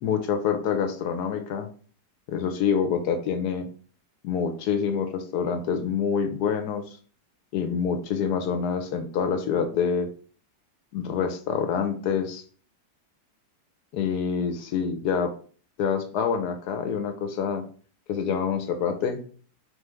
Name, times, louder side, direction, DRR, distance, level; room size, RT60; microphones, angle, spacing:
voice 1, 0.0-1.7 2.3-3.7 4.2-6.8 7.5-10.1 10.9-12.4 13.9-15.3 15.8-17.6 18.1-19.2, left 6 dB, 70° left, 7 dB, 1.2 m, -26 dB
4.2 x 3.1 x 3.4 m, 0.42 s
omnidirectional pair, 1.9 m